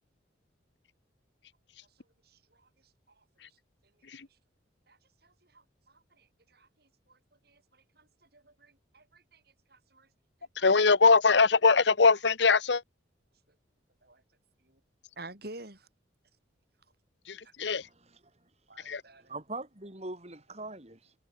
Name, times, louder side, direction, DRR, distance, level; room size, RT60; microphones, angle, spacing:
voice 1, 2.2-2.7 4.9-7.2 7.4-9.4 9.7-10.1 10.6-10.7 14.0-14.2 14.7-14.8 15.2-15.9 17.4-17.5 18.7-19.3, right 2 dB, 55° right, 6.5 m, -51 dB
voice 2, 10.6-12.8 17.3-17.9 18.9-19.0, left 4 dB, 65° left, 0.9 m, -22 dB
voice 3, 17.6-18.5 18.8-21.1, right 2 dB, 35° right, 4.1 m, -43 dB
head